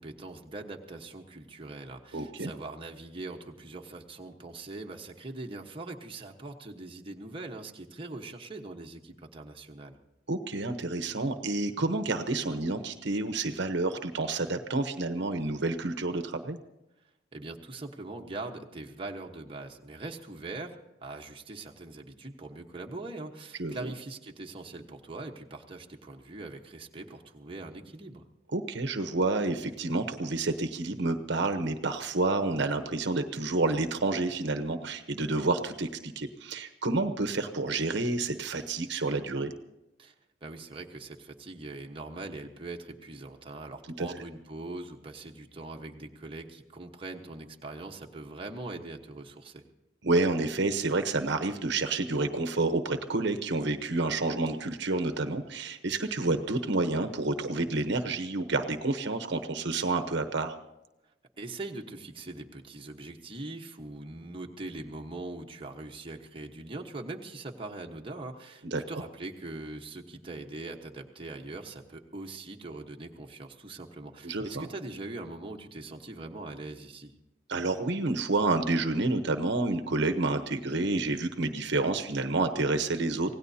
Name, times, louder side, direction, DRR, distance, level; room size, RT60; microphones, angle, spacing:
voice 1, 0.0-10.0 17.3-28.2 40.0-40.1 40.4-49.6 61.4-77.1, right 2 dB, 30° right, 1 dB, 1.2 m, -42 dB
voice 2, 2.1-2.5 10.3-16.6 23.6-23.9 28.5-39.5 44.0-44.1 50.0-60.5 68.6-68.8 74.2-74.7 77.5-83.3, right 2 dB, 65° right, 7 dB, 1.0 m, -29 dB
26.0 x 17.5 x 2.8 m, 0.95 s
head